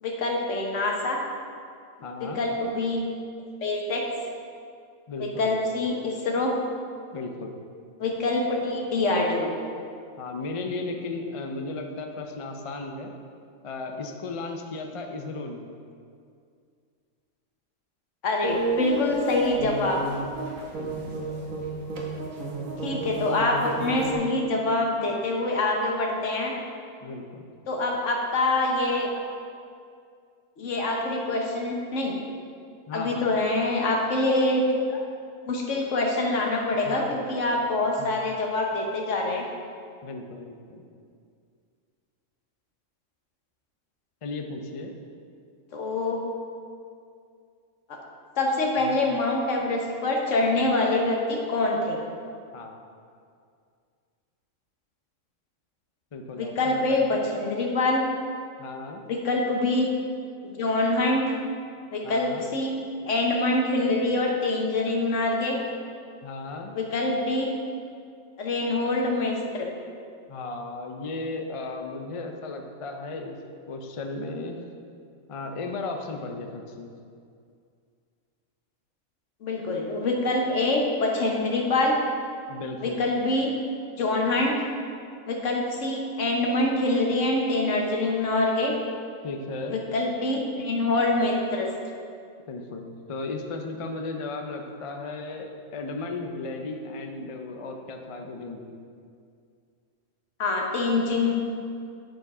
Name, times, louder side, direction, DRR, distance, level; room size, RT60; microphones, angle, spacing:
voice 1, 0.0-1.2 2.2-3.0 3.6-4.0 5.2-6.5 8.0-9.5 18.2-20.0 22.8-26.5 27.7-29.1 30.6-32.1 32.9-35.0 35.5-39.5 45.7-46.2 48.4-52.0 56.3-58.0 59.1-59.9 60.4-61.3 61.9-62.7 63.1-65.6 66.7-67.5 68.4-69.7 79.4-81.9 82.8-83.5 84.0-84.6 85.3-88.7 89.7-91.7 100.4-101.3, left 2 dB, 70° left, 0 dB, 1.4 m, -25 dB
voice 2, 2.0-2.4 5.1-5.5 7.1-7.6 10.2-13.1 13.6-15.7 20.7-21.2 27.0-27.4 32.9-33.3 36.8-37.3 38.0-38.1 40.0-40.8 44.2-44.9 48.8-48.9 52.5-52.8 56.1-57.2 58.6-59.0 62.0-62.5 66.2-66.7 70.3-73.4 73.7-74.6 75.3-76.9 82.5-83.0 89.2-89.8 92.5-98.8, left 3 dB, 45° left, 3 dB, 0.4 m, -35 dB
sound 1, 18.4-24.1, right 3 dB, 80° right, 1.5 m, -32 dB
10.5 x 4.7 x 4.9 m, 2.3 s
omnidirectional pair, 1.4 m